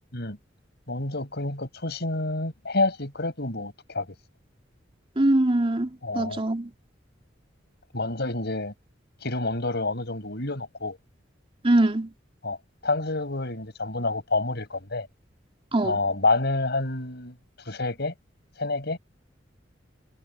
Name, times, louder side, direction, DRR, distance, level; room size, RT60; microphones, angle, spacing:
voice 1, 0.9-4.1 6.0-6.4 7.9-8.7 9.2-11.0 12.4-12.6 12.8-15.1 15.8-17.4 17.7-18.1 18.6-19.0, left 2 dB, 60° left, 6.7 m, -28 dB
voice 2, 5.2-5.9 6.1-6.7 11.6-12.1 15.7-16.0, right 1 dB, 30° right, 2.5 m, -22 dB
head